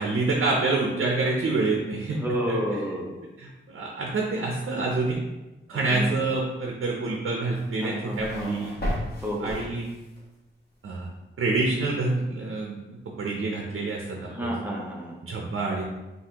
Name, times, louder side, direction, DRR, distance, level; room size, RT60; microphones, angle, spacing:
voice 1, 0.0-2.2 2.5-2.6 3.4-5.2 5.7-8.7 9.4-9.9 10.8-11.1 11.4-12.8 13.2-14.5 15.2-15.8, right 3 dB, 80° right, -1 dB, 0.7 m, -27 dB
voice 2, 2.1-3.1 5.7-6.2 7.8-8.7 9.2-9.6 14.2-15.2, equal, 10° right, -3 dB, 0.8 m, -31 dB
sound 1, 7.5-10.2, equal, 50° left, 1.3 m, -34 dB
5.8 x 2.7 x 2.9 m, 1.1 s
wide cardioid pair, 160°, 21 cm